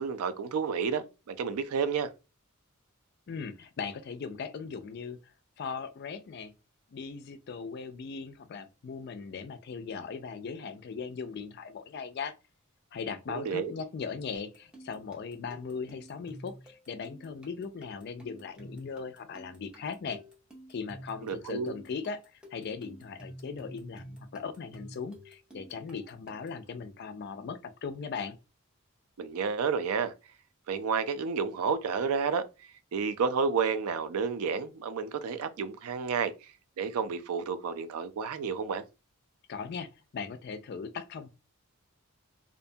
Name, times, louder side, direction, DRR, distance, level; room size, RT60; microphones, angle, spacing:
voice 1, 0.0-2.1 13.3-13.7 21.2-21.7 29.2-30.1 30.7-32.4 32.9-36.3 36.8-38.8, right 5 dB, 85° right, 0.4 m, -30 dB
voice 2, 3.3-6.5 6.9-12.4 12.9-20.2 20.7-28.4 39.5-41.3, left 5 dB, 50° left, 0.3 m, -39 dB
sound 1, 14.4-26.7, right 1 dB, 5° right, 0.6 m, -50 dB
2.5 x 2.2 x 2.6 m
head